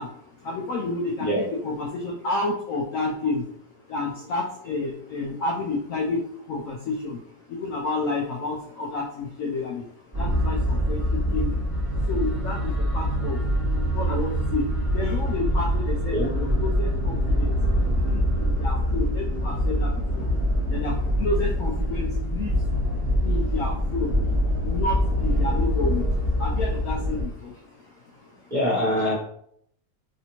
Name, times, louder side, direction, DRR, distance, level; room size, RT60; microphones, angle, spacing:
voice 1, 0.0-28.5, left 3 dB, 80° left, -1 dB, 0.7 m, -31 dB
sound 1, 10.1-27.2, equal, 10° left, 1.1 m, -24 dB
voice 2, 28.5-29.1, left 1 dB, 30° right, -7 dB, 0.8 m, -23 dB
3.2 x 2.8 x 2.8 m, 0.69 s
omnidirectional pair, 2.0 m